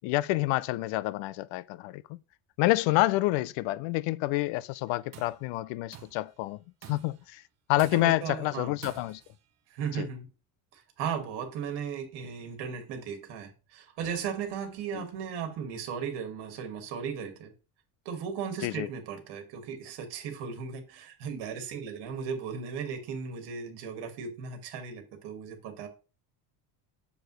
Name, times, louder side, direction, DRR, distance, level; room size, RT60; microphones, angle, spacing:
voice 1, 0.0-2.2 2.6-6.6 6.9-7.4 7.7-9.2 10.0-10.1 14.9-15.0 18.6-18.9, left 18 dB, 80° left, 0.5 m, -28 dB
Tools, 4.9-5.4 5.9-6.3 6.8-7.3 7.8-8.3 8.8-9.4, right 10 dB, 35° right, 0.7 m, -49 dB
voice 2, 7.9-8.8 9.7-10.3 10.7-17.5 18.1-25.9, right 7 dB, 60° right, 2.0 m, -36 dB
6.8 x 6.8 x 3.1 m
cardioid pair, 180°, 45 cm